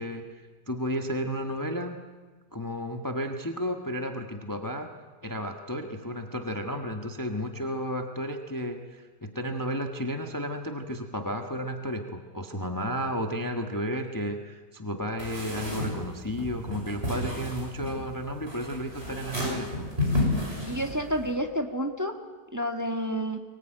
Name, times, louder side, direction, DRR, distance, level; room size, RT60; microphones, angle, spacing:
voice 1, 0.0-1.9 2.5-4.9 5.2-19.9, equal, 10° left, 4 dB, 1.3 m, -33 dB
sound 1, 15.2-21.3, left 1 dB, 35° right, 6.7 m, -32 dB
voice 2, 20.7-22.1 22.5-23.4, equal, 10° right, 3 dB, 1.6 m, -29 dB
24.0 x 19.0 x 9.2 m, 1.3 s
omnidirectional pair, 1.8 m